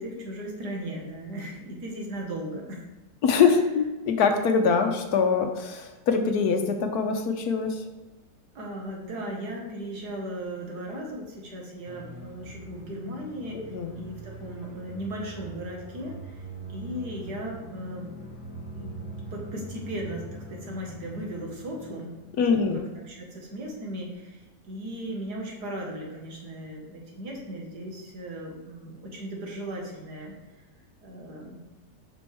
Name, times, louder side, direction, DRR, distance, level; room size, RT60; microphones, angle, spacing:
voice 1, 0.0-2.9 3.4-3.5 8.6-16.4 16.7-18.4 18.7-18.9 19.3-22.1 22.5-30.3 31.0-31.7, right 1 dB, 70° right, -1 dB, 2.0 m, -37 dB
voice 2, 3.2-7.8 13.5-13.9 22.4-22.8, left 5 dB, 65° left, 5 dB, 1.2 m, -23 dB
sound 1, 11.8-22.6, right 1 dB, 15° right, 0.9 m, -42 dB
7.5 x 6.1 x 3.5 m, 1.1 s
omnidirectional pair, 1.9 m